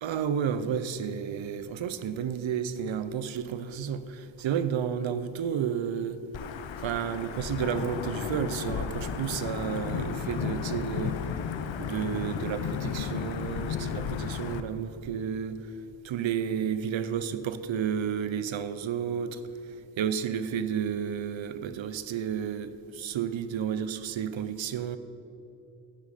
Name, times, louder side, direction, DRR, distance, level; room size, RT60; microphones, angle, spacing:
voice 1, 0.0-6.2 6.8-11.2 11.8-15.7 16.0-25.0, right 8 dB, 85° right, 12 dB, 0.7 m, -31 dB
Wind / Thunder / Rain, 6.3-14.6, left 7 dB, 85° left, 0.6 m, -33 dB
sound 1, 8.0-13.4, left 2 dB, 30° left, 0.8 m, -47 dB
10.0 x 8.4 x 5.6 m, 3.0 s
wide cardioid pair, 155°, 45 cm